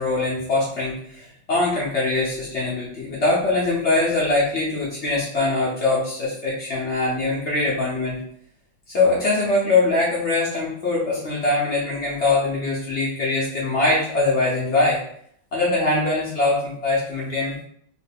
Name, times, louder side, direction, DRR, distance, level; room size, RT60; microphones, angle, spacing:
voice 1, 0.0-8.2 8.9-15.0 15.5-17.5, left 2 dB, 55° left, -5 dB, 0.8 m, -22 dB
3.1 x 2.5 x 3.5 m, 0.65 s
omnidirectional pair, 2.1 m